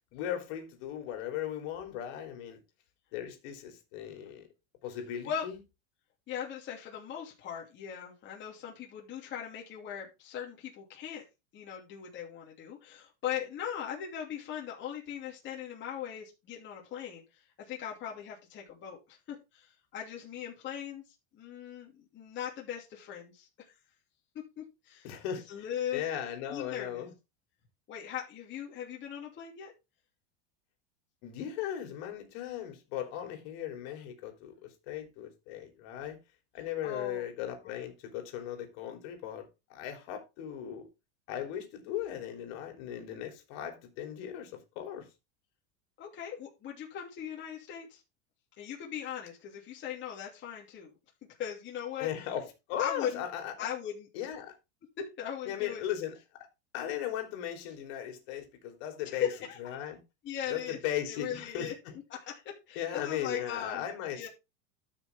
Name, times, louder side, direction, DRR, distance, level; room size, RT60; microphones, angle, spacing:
voice 1, 0.1-2.6 3.1-4.5 4.8-5.6 25.0-25.7 25.9-27.1 31.2-36.2 36.5-40.9 41.3-45.1 52.0-53.7 54.1-54.5 55.5-56.2 56.7-59.3 59.6-60.0 60.5-62.0 62.8-64.3, left 10 dB, 60° left, 3.5 m, -37 dB
voice 2, 6.3-11.2 11.5-17.2 17.6-21.0 21.3-23.7 24.6-25.1 25.5-26.0 26.5-27.0 27.9-29.7 36.8-37.2 46.0-48.0 48.6-50.9 51.4-52.1 52.8-53.2 53.6-54.1 55.0-55.8 59.0-59.8 60.2-60.8 61.1-61.7 62.1-63.8 64.1-64.3, left 9 dB, 30° left, 2.9 m, -39 dB
12.5 x 6.1 x 3.5 m
supercardioid pair, 155°, 36 cm